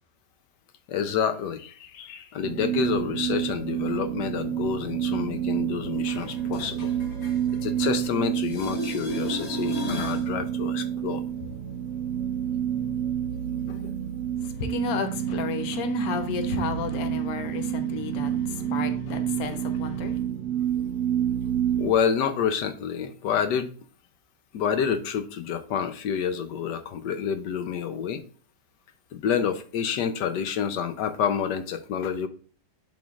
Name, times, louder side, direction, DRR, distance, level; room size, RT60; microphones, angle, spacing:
voice 1, 0.9-6.9 7.6-11.2 13.7-13.9 21.8-23.7 24.5-28.2 29.1-32.3, left 7 dB, 85° left, 1.3 m, -28 dB
sound 1, 2.4-21.9, right 10 dB, 70° right, 1.2 m, -29 dB
sound 2, 6.0-8.1 8.4-10.3 16.0-16.1, left 1 dB, 45° left, 1.4 m, -36 dB
voice 2, 14.4-20.2, left 6 dB, 65° left, 1.2 m, -32 dB
11.0 x 3.7 x 2.4 m
omnidirectional pair, 1.8 m